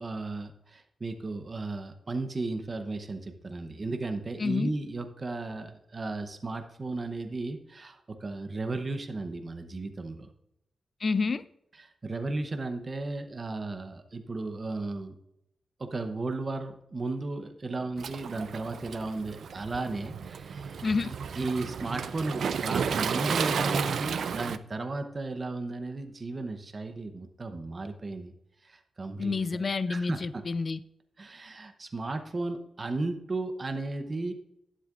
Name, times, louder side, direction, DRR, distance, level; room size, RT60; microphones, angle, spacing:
voice 1, 0.0-10.3 11.8-15.1 15.8-20.9 21.3-28.3 28.6-29.3 29.9-30.5 31.2-34.3, right 3 dB, 30° right, 0.8 m, -35 dB
voice 2, 4.4-4.7 11.0-11.4 20.8-21.1 29.2-30.8, left 4 dB, 35° left, 0.4 m, -29 dB
Waves surf, 18.0-24.6, right 6 dB, 70° right, 0.4 m, -32 dB
11.5 x 10.0 x 2.5 m
wide cardioid pair, 160°, 0 cm